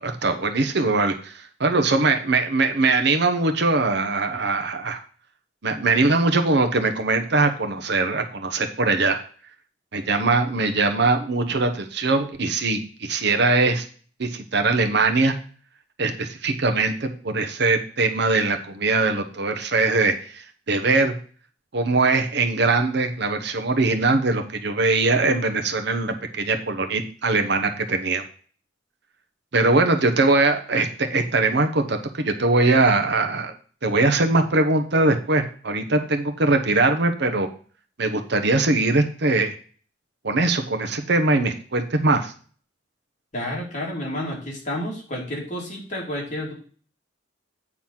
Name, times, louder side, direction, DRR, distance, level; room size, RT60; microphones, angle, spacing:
voice 1, 0.0-5.0 5.6-9.2 9.9-13.8 14.2-15.3 16.0-21.1 21.7-28.2 29.5-33.5 33.8-37.5 38.0-39.6 40.2-42.3, right 3 dB, 60° right, 6 dB, 1.0 m, -21 dB
voice 2, 43.3-46.5, left 1 dB, 40° left, -3 dB, 3.1 m, -30 dB
8.9 x 4.1 x 5.8 m, 0.42 s
head